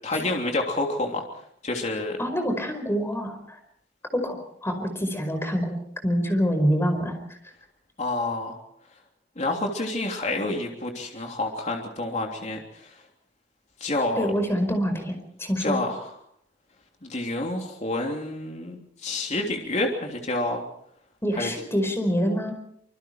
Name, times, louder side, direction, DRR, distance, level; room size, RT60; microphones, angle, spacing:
voice 1, 0.0-1.2 1.6-2.2 8.0-8.6 9.4-13.0 13.8-14.3 15.6-16.1 17.0-20.6 21.4-21.5, left 2 dB, 40° left, 1 dB, 3.3 m, -28 dB
voice 2, 2.2-3.6 4.1-7.4 14.2-15.1 15.4-15.8 21.2-22.5, equal, 15° left, 6 dB, 5.0 m, -26 dB
26.0 x 25.0 x 4.6 m, 0.70 s
head